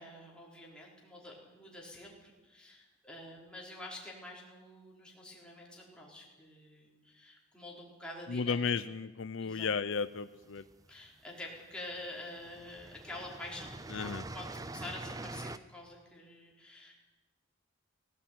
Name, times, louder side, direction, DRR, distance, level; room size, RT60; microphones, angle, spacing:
voice 1, 0.0-8.7 9.4-9.7 10.9-16.9, left 1 dB, 5° left, -4 dB, 5.3 m, -47 dB
voice 2, 8.3-10.6 13.9-14.2, left 5 dB, 65° left, 14 dB, 0.6 m, -34 dB
sound 1, 10.2-11.1 11.9-12.1 12.4-15.6, right 2 dB, 15° right, 0.6 m, -44 dB
18.0 x 17.5 x 9.4 m, 1.2 s
head